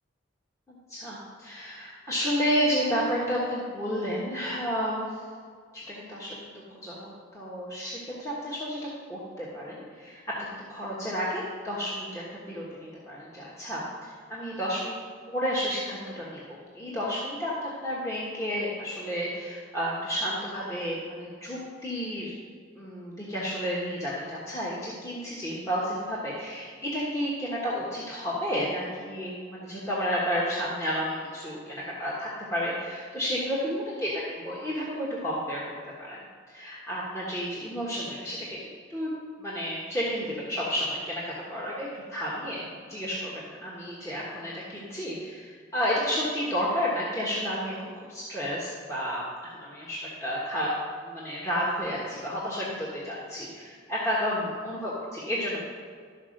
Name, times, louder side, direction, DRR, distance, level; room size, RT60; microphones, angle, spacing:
voice 1, 0.7-5.2 5.7-6.4 6.8-15.0 15.3-22.3 22.8-34.1 34.4-36.2 36.5-39.1 39.4-50.7 51.0-55.6, equal, 15° left, -7 dB, 1.3 m, -31 dB
12.5 x 4.9 x 6.4 m, 2.1 s
head